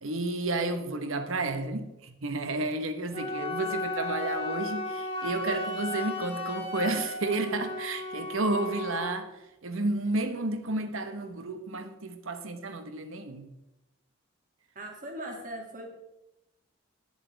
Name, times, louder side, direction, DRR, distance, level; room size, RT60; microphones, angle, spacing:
voice 1, 0.0-9.3 9.6-13.5, right 2 dB, 80° right, 1.2 m, -31 dB
Wind instrument woodwind instrument, 3.1-9.2, left 2 dB, 25° left, 2.2 m, -35 dB
voice 2, 14.7-15.9, right 1 dB, 40° right, 2.4 m, -39 dB
19.5 x 7.1 x 3.4 m
head